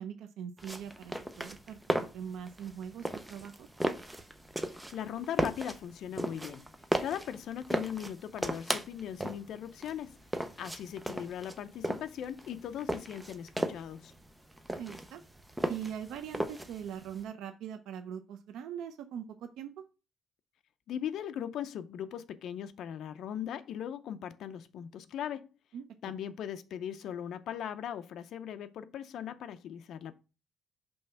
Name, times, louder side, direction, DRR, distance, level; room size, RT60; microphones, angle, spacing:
voice 1, 0.0-1.8 2.1-3.7 14.7-15.2 15.7-19.8 25.7-25.8, right 8 dB, 90° right, 0.6 m, -41 dB
sound 1, 0.6-17.2, right 1 dB, 5° right, 0.5 m, -36 dB
voice 2, 4.9-6.6 7.0-10.1 10.6-14.1 20.9-25.5 26.0-30.1, left 9 dB, 65° left, 0.5 m, -39 dB
5.4 x 3.4 x 5.5 m
cardioid pair, 155°, 0 cm